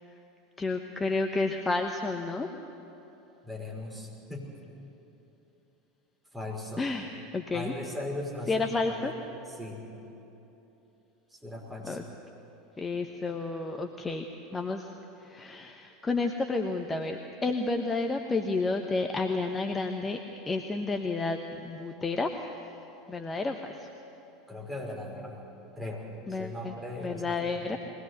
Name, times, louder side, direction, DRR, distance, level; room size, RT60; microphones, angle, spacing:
voice 1, 0.6-2.5 6.8-7.1 7.3-7.7 8.5-9.1 11.8-12.0 12.8-14.2 14.5-14.9 15.2-20.2 20.5-22.5 23.1-23.9 26.3-26.7 27.0-27.8, left 3 dB, 15° left, 4 dB, 1.1 m, -31 dB
voice 2, 3.4-4.5 6.3-6.9 7.5-9.1 9.6-9.9 11.3-12.0 24.5-25.5 25.8-27.8, left 1 dB, 10° right, -2 dB, 5.6 m, -38 dB
22.5 x 18.5 x 8.2 m, 3.0 s
figure-of-eight pair, 75°, 0 cm